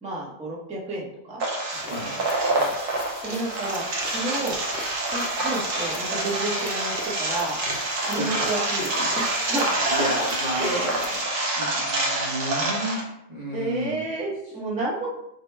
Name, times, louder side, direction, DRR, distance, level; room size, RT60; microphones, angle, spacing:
voice 1, 0.0-1.4 1.8-2.1 2.6-2.7 3.2-4.6 5.1-7.6 8.0-9.7 10.0-10.1 10.6-10.9 13.5-15.1, right 2 dB, 5° right, -6 dB, 0.5 m, -31 dB
sound 1, 1.4-13.0, right 2 dB, 80° right, 1.3 m, -27 dB
sound 2, 1.7-11.2, left 4 dB, 80° left, 0.5 m, -41 dB
voice 2, 9.9-11.2 11.5-14.0, equal, 35° right, -5 dB, 0.9 m, -32 dB
3.7 x 2.1 x 4.4 m, 0.79 s
omnidirectional pair, 1.6 m